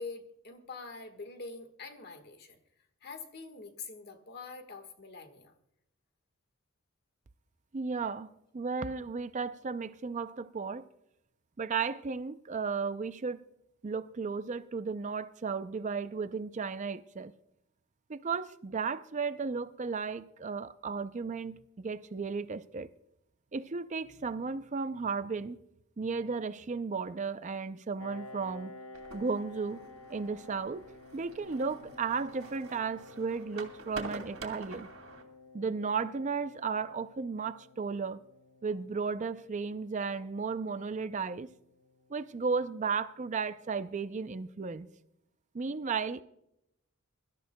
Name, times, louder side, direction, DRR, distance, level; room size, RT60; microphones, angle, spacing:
voice 1, 0.0-2.6 3.0-5.5, left 4 dB, 50° left, 1.5 m, -45 dB
voice 2, 7.7-10.9 11.6-13.4 13.8-17.3 18.1-22.9 23.5-25.6 26.0-28.7 29.1-29.8 30.1-30.8 31.1-34.9 35.5-38.2 38.6-41.5 42.1-44.9 45.5-46.2, right 5 dB, 35° right, 0.4 m, -34 dB
Piano, 28.0-43.3, left 2 dB, 90° left, 0.8 m, -53 dB
sound 1, 28.9-35.2, right 3 dB, 85° right, 2.5 m, -47 dB
24.0 x 13.0 x 2.2 m
head